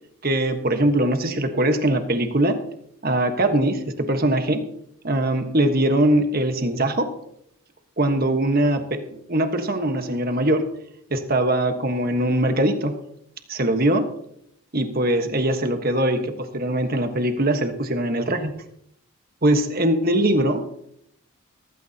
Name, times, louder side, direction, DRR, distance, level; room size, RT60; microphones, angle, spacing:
voice 1, 0.2-2.6 3.0-4.7 5.0-7.1 8.0-9.0 9.3-10.6 11.1-12.9 13.5-14.1 14.7-18.5 19.4-20.6, right 1 dB, 40° right, 6 dB, 1.4 m, -21 dB
16.0 x 15.5 x 2.9 m, 0.73 s
head